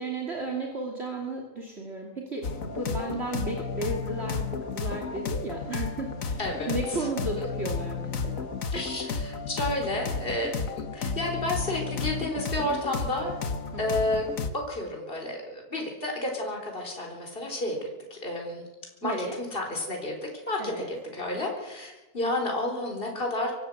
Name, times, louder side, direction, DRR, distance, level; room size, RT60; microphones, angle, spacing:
voice 1, 0.0-8.5 13.7-13.8 19.0-19.4 20.6-20.9, right 2 dB, 40° right, 0 dB, 3.1 m, -34 dB
sound 1, 2.4-14.5, left 4 dB, 60° left, 1.7 m, -33 dB
voice 2, 6.4-7.1 8.7-13.4 13.8-18.7 19.0-23.5, left 1 dB, 35° left, 1 dB, 4.4 m, -31 dB
25.0 x 14.5 x 7.9 m, 1.1 s
omnidirectional pair, 1.7 m